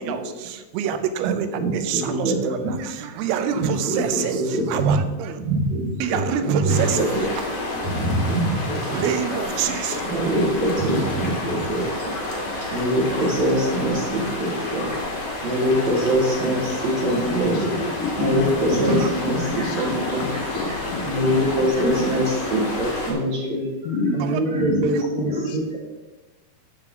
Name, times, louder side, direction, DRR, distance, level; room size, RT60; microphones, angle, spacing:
voice 1, 0.0-5.4 6.0-7.4 8.9-10.0 18.9-19.1 24.8-25.0, right 8 dB, 85° right, 9 dB, 2.6 m, -27 dB
voice 2, 1.2-2.8 3.5-5.0 5.4-7.3 7.8-9.1 9.6-9.8 10.1-12.1 12.6-17.7 18.2-20.3 21.0-23.6 24.1-25.3, right 1 dB, 55° right, -4 dB, 2.3 m, -23 dB
sound 1, 6.7-23.1, left 2 dB, 50° left, 2.3 m, -30 dB
voice 3, 17.1-19.1 19.5-21.5 22.4-22.5 23.8-24.8 25.2-25.8, left 3 dB, 75° left, 4 dB, 2.0 m, -30 dB
12.0 x 4.6 x 3.6 m, 1.1 s
omnidirectional pair, 4.5 m